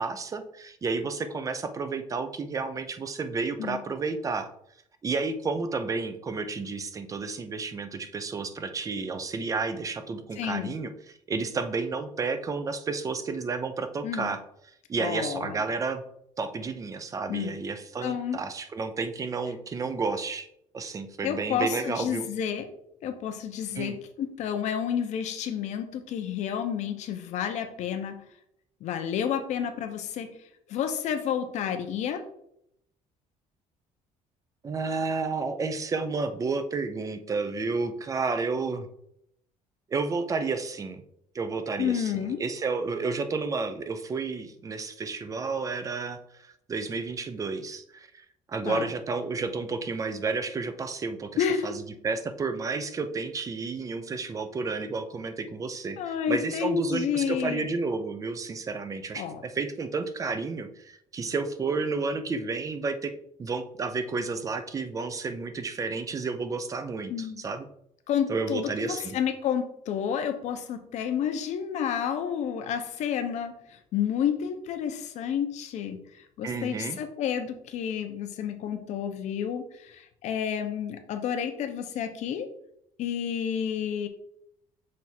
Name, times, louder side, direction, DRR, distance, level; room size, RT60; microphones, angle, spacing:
voice 1, 0.0-4.5 5.0-14.4 14.9-16.0 16.4-20.5 20.7-22.3 23.7-24.0 34.6-38.9 39.9-41.0 41.3-51.3 51.6-63.1 63.4-67.7 68.3-69.2 76.4-77.0, right 4 dB, 25° right, 9 dB, 0.6 m, -31 dB
voice 2, 10.4-10.7 14.0-14.3 15.0-15.6 17.3-17.6 18.0-18.4 21.2-22.7 23.0-28.1 28.8-30.4 30.7-32.2 41.8-42.4 48.7-48.9 51.4-51.7 56.0-57.7 59.1-59.4 67.1-67.4 68.1-82.5 83.0-84.1, left 8 dB, 60° left, 7 dB, 0.9 m, -30 dB
6.4 x 3.5 x 4.3 m, 0.73 s
cardioid pair, 145°, 13 cm